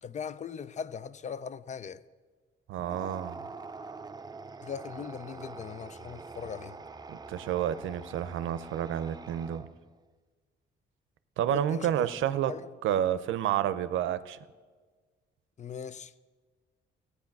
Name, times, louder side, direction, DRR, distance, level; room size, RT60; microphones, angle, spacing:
voice 1, 0.0-2.0 4.6-6.8 11.4-12.1 12.5-12.7 15.6-16.1, left 7 dB, 35° left, 0.5 m, -40 dB
voice 2, 2.7-3.4 7.1-9.7 11.4-12.5 12.8-14.4, right 10 dB, 80° right, 0.6 m, -30 dB
sound 1, 2.8-9.9, right 4 dB, 20° right, 0.5 m, -45 dB
15.0 x 8.3 x 5.9 m
cardioid pair, 90°, 20 cm